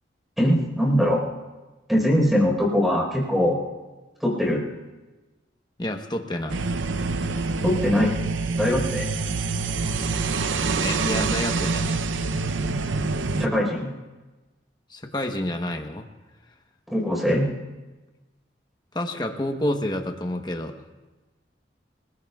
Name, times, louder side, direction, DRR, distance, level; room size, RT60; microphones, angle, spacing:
voice 1, 0.4-1.2 1.9-3.6 4.2-4.7 7.6-8.1 8.6-9.1 13.4-13.9 16.9-17.5, equal, ahead, -2 dB, 4.5 m, -21 dB
voice 2, 5.8-6.6 10.8-12.0 14.9-16.1 18.9-20.8, left 1 dB, 20° left, 4 dB, 1.1 m, -29 dB
sound 1, 6.5-13.5, right 3 dB, 85° right, 0.7 m, -26 dB
28.0 x 20.5 x 2.4 m, 1.2 s
head